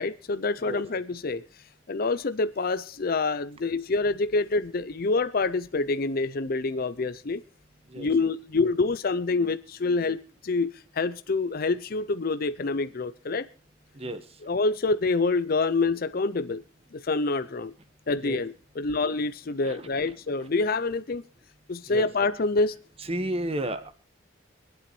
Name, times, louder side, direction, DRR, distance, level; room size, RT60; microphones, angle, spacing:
voice 1, 0.0-1.4 1.9-7.4 8.0-13.5 14.5-16.6 16.9-17.7 18.1-21.2 21.7-22.8, left 3 dB, 50° left, 13 dB, 0.5 m, -27 dB
voice 2, 13.9-14.2 18.2-18.4 19.6-20.5 21.9-22.1 23.0-23.9, right 1 dB, 30° right, 10 dB, 1.4 m, -33 dB
25.5 x 8.8 x 3.2 m, 0.41 s
head